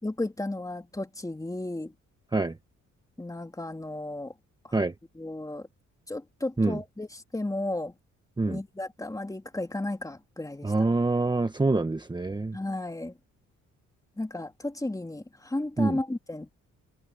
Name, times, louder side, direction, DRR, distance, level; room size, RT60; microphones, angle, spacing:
voice 1, 0.0-1.9 3.2-4.3 4.6-4.8 5.2-5.7 6.1-7.9 8.5-10.7 12.5-13.1 14.2-16.5, left 2 dB, 10° left, 3.0 m, -34 dB
voice 2, 10.6-12.6 15.8-16.0, right 3 dB, 15° right, 1.3 m, -25 dB
cardioid pair, 90°, 30 cm